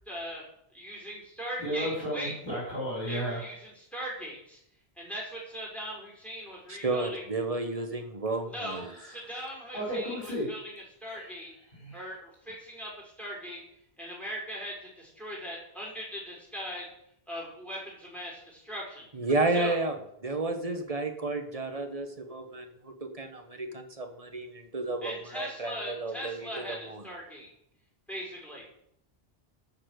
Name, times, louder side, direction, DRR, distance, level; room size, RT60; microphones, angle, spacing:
voice 1, 0.1-0.4 0.7-2.3 3.1-4.6 5.0-7.3 8.5-11.5 11.9-13.6 14.0-16.9 17.3-19.1 19.5-19.8 25.0-27.5 28.1-28.7, equal, ahead, -3 dB, 5.4 m, -39 dB
voice 2, 1.6-3.4 8.8-9.2 9.7-10.5 11.1-12.0, equal, 50° left, -5 dB, 5.6 m, -34 dB
voice 3, 6.7-8.9 19.1-20.0 20.2-27.0, right 2 dB, 35° right, 5 dB, 1.6 m, -32 dB
14.5 x 5.9 x 6.7 m, 0.74 s
omnidirectional pair, 1.1 m